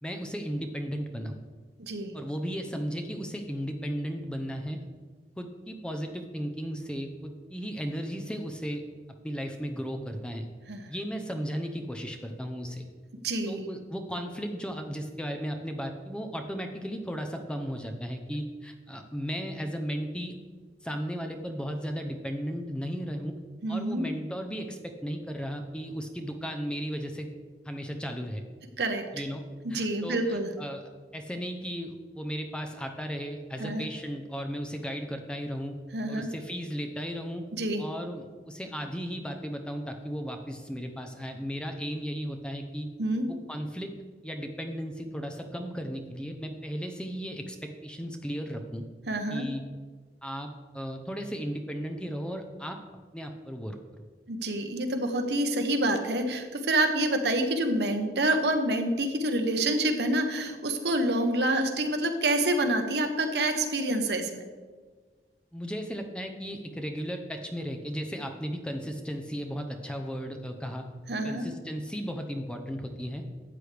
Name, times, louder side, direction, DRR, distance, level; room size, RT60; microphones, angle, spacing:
voice 1, 0.0-1.4 2.1-4.8 5.4-8.8 9.2-10.4 10.9-12.8 13.5-20.3 20.8-23.3 23.7-27.3 27.6-28.4 29.1-29.4 29.7-30.8 31.1-35.8 36.1-37.5 37.8-42.9 43.3-43.9 44.2-48.9 49.3-49.6 50.2-52.8 53.1-53.8 65.5-70.9 71.2-73.2, equal, 5° left, 4 dB, 0.7 m, -35 dB
voice 2, 1.8-2.1 10.7-10.9 13.2-13.7 23.6-24.0 28.8-29.0 29.6-30.5 33.6-33.8 35.9-36.3 37.6-37.8 43.0-43.2 49.1-49.5 54.3-64.4 71.1-71.5, right 1 dB, 65° right, 6 dB, 1.0 m, -27 dB
12.5 x 8.2 x 3.4 m, 1.4 s
head